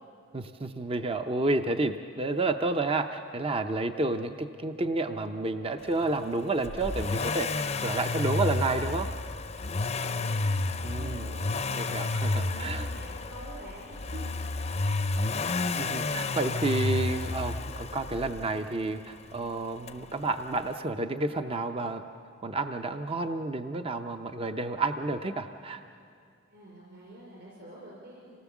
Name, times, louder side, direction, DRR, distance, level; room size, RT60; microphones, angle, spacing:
voice 1, 0.3-9.1 10.8-11.3 11.8-12.9 15.8-22.0 22.4-25.8, right 2 dB, 25° right, 8 dB, 0.5 m, -30 dB
Accelerating revving vroom, 6.6-18.6 19.9-20.0, left 3 dB, 30° left, 0.6 m, -31 dB
voice 2, 9.8-14.6 26.5-28.4, right 1 dB, 55° right, -5 dB, 5.0 m, -47 dB
26.5 x 18.5 x 7.2 m, 2.4 s
head